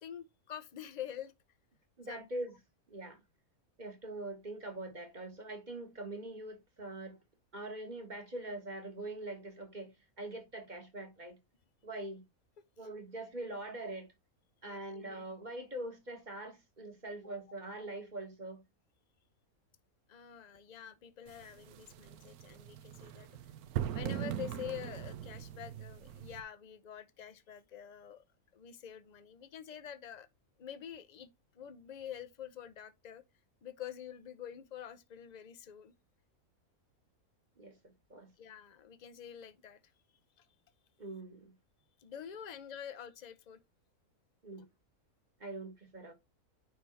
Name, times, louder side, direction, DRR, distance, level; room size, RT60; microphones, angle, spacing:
voice 1, 0.0-1.3 2.0-2.3 14.6-14.8 20.1-23.3 23.9-28.2 28.5-30.3 30.6-31.3 31.5-33.2 33.6-35.9 38.4-39.8 40.4-40.5 42.0-43.6, left 9 dB, 50° left, 0.5 m, -47 dB
voice 2, 2.0-2.5 2.9-3.2 3.8-7.2 7.5-11.4 11.8-12.2 12.8-14.1 14.6-18.6 37.6-38.3 41.0-41.5 44.4-44.6 45.4-46.1, right 2 dB, 30° right, 1.3 m, -43 dB
sound 1, 21.3-26.4, right 10 dB, 80° right, 1.2 m, -41 dB
9.5 x 3.4 x 4.1 m
omnidirectional pair, 1.6 m